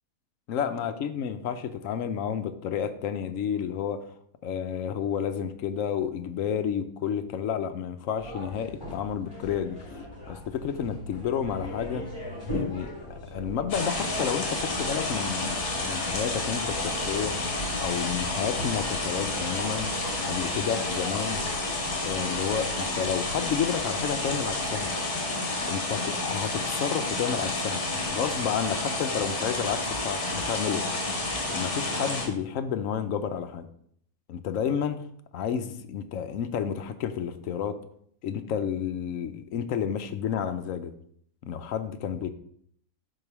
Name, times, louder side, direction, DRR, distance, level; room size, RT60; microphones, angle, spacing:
voice 1, 0.5-4.0 4.4-9.8 10.3-12.1 12.5-12.9 13.3-17.5 17.8-19.9 20.2-21.4 22.0-24.9 25.7-30.9 31.5-33.7 34.3-35.1 35.3-37.8 38.2-40.9 41.4-42.3, left 8 dB, 70° left, 9 dB, 1.0 m, -31 dB
sound 1, 8.2-24.8, left 1 dB, 15° left, 3.2 m, -40 dB
sound 2, 13.7-32.2, left 2 dB, 50° left, 1.8 m, -30 dB
5.0 x 4.7 x 5.9 m, 0.66 s
omnidirectional pair, 1.6 m